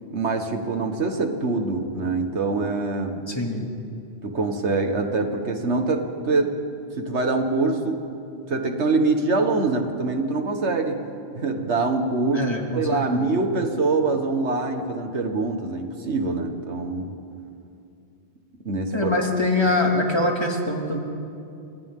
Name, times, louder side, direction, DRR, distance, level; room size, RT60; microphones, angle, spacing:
voice 1, 0.1-3.2 4.2-6.6 7.0-8.0 8.5-11.0 11.4-12.5 12.8-17.1 18.7-19.1, right 3 dB, 80° right, 5 dB, 1.9 m, -24 dB
voice 2, 3.3-3.6 12.3-13.4 18.9-21.0, left 2 dB, 25° left, 0 dB, 2.4 m, -24 dB
29.5 x 25.0 x 3.8 m, 2.6 s
omnidirectional pair, 1.2 m